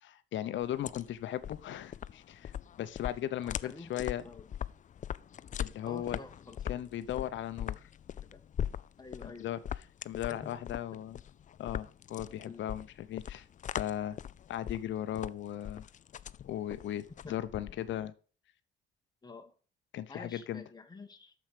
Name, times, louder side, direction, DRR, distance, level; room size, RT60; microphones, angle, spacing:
voice 1, 0.0-2.5 2.8-4.2 5.6-6.2 6.7-7.9 9.2-9.6 10.0-11.2 11.6-13.5 13.8-14.2 14.5-15.8 16.4-18.1 19.9-20.6, left 11 dB, 70° left, 13 dB, 0.8 m, -37 dB
sound 1, 0.6-18.1, left 9 dB, 40° left, 0.4 m, -41 dB
voice 2, 3.4-4.5 5.8-6.8 8.3-8.4 9.0-9.5 10.3-10.6 12.4-12.6 17.2-17.3 19.2-19.5 20.1-21.3, left 3 dB, 20° left, 5 dB, 1.6 m, -49 dB
8.9 x 7.1 x 5.0 m, 0.39 s
cardioid pair, 90°, 20 cm